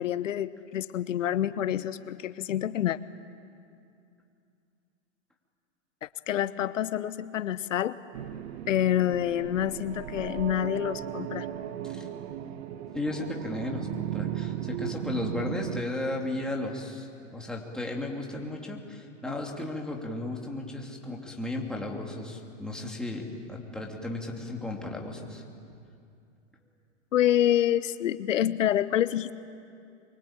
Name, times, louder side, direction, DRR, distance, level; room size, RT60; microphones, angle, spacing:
voice 1, 0.0-3.0 6.0-8.0 8.7-11.5 27.1-29.3, left 11 dB, 80° left, 14 dB, 1.0 m, -27 dB
sound 1, 8.1-15.8, right 11 dB, 55° right, 1.5 m, -36 dB
voice 2, 12.9-25.4, left 2 dB, ahead, -1 dB, 2.9 m, -35 dB
24.0 x 23.5 x 9.0 m, 2.5 s
hypercardioid pair, 135°, 37 cm